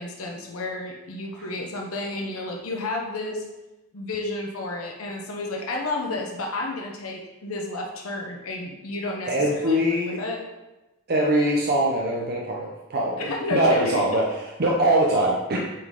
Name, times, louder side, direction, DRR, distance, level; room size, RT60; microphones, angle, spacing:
voice 1, 0.0-3.4 3.9-10.4 13.2-14.0, left 2 dB, 80° left, 0 dB, 0.9 m, -31 dB
voice 2, 9.3-10.2 11.1-15.6, right 1 dB, 50° right, -2 dB, 0.7 m, -22 dB
7.6 x 4.0 x 3.7 m, 1.0 s
head